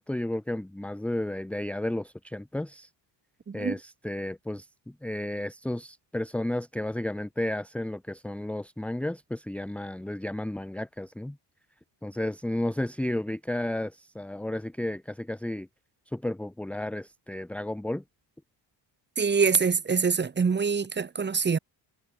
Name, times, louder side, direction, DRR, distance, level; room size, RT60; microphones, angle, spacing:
voice 1, 0.0-2.9 3.5-11.4 12.0-15.7 16.1-18.0, left 1 dB, 5° left, 1.1 m, -32 dB
voice 2, 19.2-21.6, right 5 dB, 25° right, 3.3 m, -25 dB
cardioid pair, 165°, 44 cm